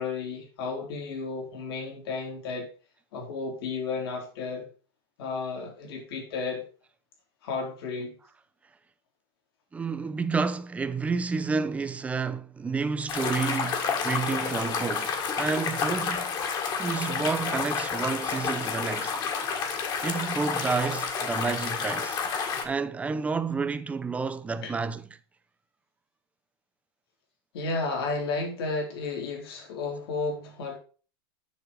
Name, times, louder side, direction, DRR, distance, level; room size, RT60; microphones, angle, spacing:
voice 1, 0.0-2.7 3.1-4.7 5.2-6.7 7.4-8.2 24.6-24.7 27.5-30.8, left 4 dB, 70° left, 3.6 m, -33 dB
voice 2, 9.7-16.3 16.8-19.2 20.0-22.2 22.6-25.0, right 4 dB, 10° right, 0.6 m, -30 dB
sound 1, 13.1-22.6, left 6 dB, 30° left, 1.8 m, -30 dB
7.2 x 6.5 x 5.0 m
supercardioid pair, 145°, 13 cm